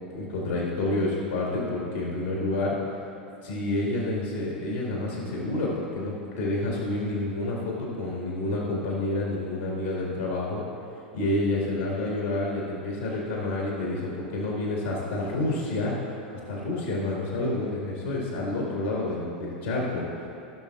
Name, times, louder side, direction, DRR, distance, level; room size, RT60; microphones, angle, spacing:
voice 1, 0.1-2.8 3.4-10.6 11.1-16.2 16.5-20.3, left 2 dB, 80° left, -4 dB, 1.8 m, -29 dB
17.0 x 6.0 x 2.5 m, 2.8 s
hypercardioid pair, 90°, 6 cm